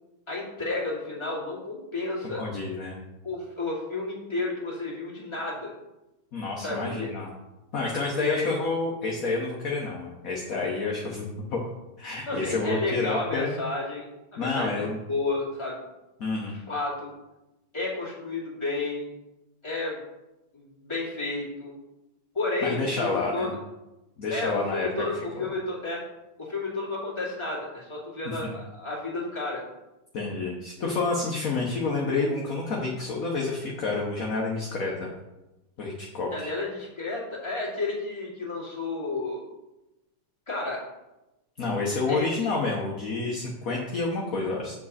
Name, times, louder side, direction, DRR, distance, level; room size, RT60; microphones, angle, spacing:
voice 1, 0.3-2.4 3.2-5.7 6.6-7.1 8.0-8.5 12.3-14.1 14.3-15.8 16.5-17.1 17.7-19.1 19.6-20.0 20.5-21.7 22.3-23.5 24.3-26.0 26.4-29.6 36.3-39.4 40.5-40.8 42.1-42.3, left 3 dB, 15° left, -6 dB, 2.4 m, -31 dB
voice 2, 2.3-3.0 6.3-7.3 7.7-11.6 12.0-13.6 14.4-15.0 16.2-16.5 22.6-23.5 24.2-24.9 25.2-25.4 28.4-28.5 30.1-35.1 35.8-36.5 41.6-44.7, left 3 dB, 50° left, -1 dB, 1.3 m, -29 dB
7.4 x 7.4 x 4.2 m, 0.98 s
omnidirectional pair, 2.2 m